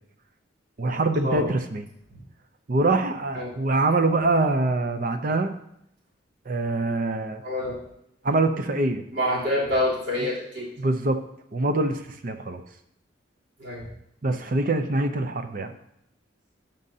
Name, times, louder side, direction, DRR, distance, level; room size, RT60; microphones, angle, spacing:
voice 1, 0.8-1.8 2.7-5.5 6.5-7.4 8.2-9.0 10.2-10.3 10.8-11.2 11.5-12.6 14.2-15.7, right 2 dB, 50° right, 8 dB, 0.6 m, -24 dB
voice 2, 7.4-7.7 9.1-10.7 13.6-13.9, left 1 dB, 80° right, -7 dB, 3.3 m, -27 dB
13.0 x 5.3 x 2.8 m, 0.75 s
head